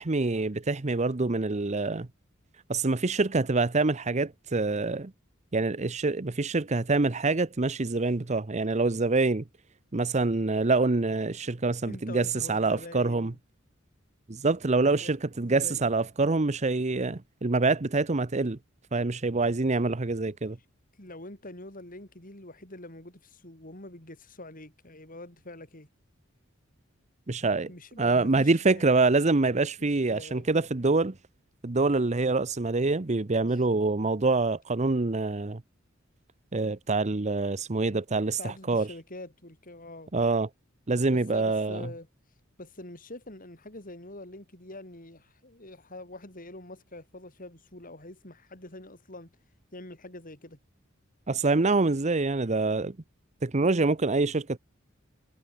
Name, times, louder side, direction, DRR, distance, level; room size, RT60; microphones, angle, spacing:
voice 1, 0.0-2.1 2.7-5.1 5.5-9.4 9.9-13.3 14.3-18.6 18.9-20.6 27.3-27.7 28.0-31.1 31.6-35.6 36.5-38.9 40.1-40.5 40.9-41.9 51.3-52.9 53.4-54.6, right 3 dB, 35° right, 0.8 m, -26 dB
voice 2, 11.8-13.4 14.8-15.1 15.4-15.9 21.0-25.9 27.7-28.9 29.8-30.5 38.4-40.1 41.1-42.1 42.6-49.3 49.7-50.6, left 2 dB, 45° left, 8.0 m, -45 dB
head